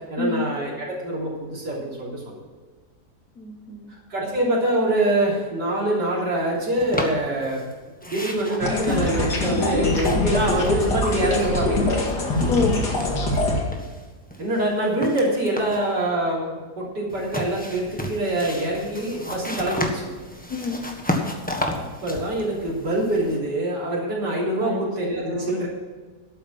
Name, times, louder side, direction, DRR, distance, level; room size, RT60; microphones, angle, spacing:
voice 1, 0.1-2.4 4.1-7.6 8.0-12.0 14.4-20.1 21.7-25.7, right 1 dB, 90° right, -5 dB, 4.0 m, -25 dB
voice 2, 3.4-3.9 12.5-12.8 20.5-20.8 24.6-24.8 25.3-25.5, left 3 dB, 60° left, 0 dB, 1.8 m, -27 dB
sound 1, 6.8-7.7 8.0-11.8 12.0-13.4 13.7-15.9 17.1-23.4, left 1 dB, 5° left, 1.2 m, -33 dB
sound 2, 8.6-13.6, left 2 dB, 75° left, 2.8 m, -23 dB
12.0 x 8.9 x 6.0 m, 1.4 s
omnidirectional pair, 1.8 m